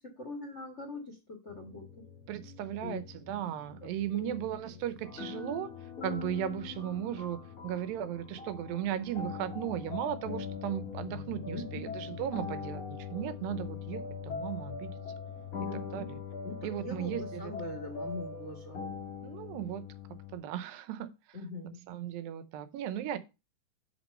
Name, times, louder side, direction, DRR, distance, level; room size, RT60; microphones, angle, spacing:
voice 1, 0.0-2.0 2.8-3.0 3.8-4.4 11.5-12.0 15.6-16.2 16.4-18.9 21.3-21.8, left 2 dB, 75° left, 0.6 m, -42 dB
sound 1, 1.5-15.7, left 6 dB, 35° right, 0.5 m, -53 dB
voice 2, 2.3-5.7 6.0-7.4 7.6-14.9 15.9-16.2 16.6-17.8 19.2-19.8 20.3-21.4 21.9-23.2, right 11 dB, 85° right, 2.5 m, -36 dB
sound 2, 5.0-20.4, left 6 dB, 45° left, 1.1 m, -41 dB
6.1 x 5.9 x 5.3 m
omnidirectional pair, 4.1 m